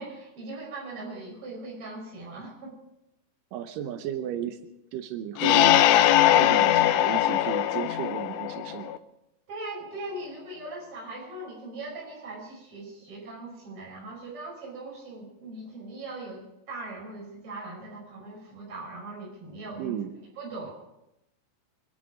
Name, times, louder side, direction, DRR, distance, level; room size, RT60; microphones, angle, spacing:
voice 1, 0.0-2.7 9.5-20.0 20.4-20.7, right 2 dB, 30° right, -3 dB, 6.1 m, -40 dB
voice 2, 3.5-4.6 4.9-5.8 6.3-9.0 19.8-20.1, right 10 dB, 85° right, 7 dB, 2.0 m, -34 dB
sound 1, 5.4-9.0, left 13 dB, 80° left, 2.8 m, -21 dB
25.5 x 11.0 x 5.2 m, 0.87 s
omnidirectional pair, 5.0 m